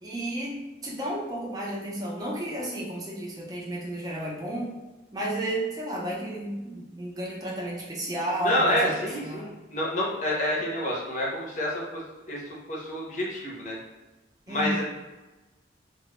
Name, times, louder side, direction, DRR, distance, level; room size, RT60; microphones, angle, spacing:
voice 1, 0.0-4.8 5.1-8.9 9.2-9.5 14.5-14.8, right 1 dB, 20° right, -3 dB, 0.5 m, -32 dB
voice 2, 8.4-12.0 12.3-12.4 12.7-13.8 14.5-14.8, left 1 dB, 45° left, -4 dB, 0.6 m, -28 dB
2.1 x 2.0 x 2.9 m, 1.1 s
head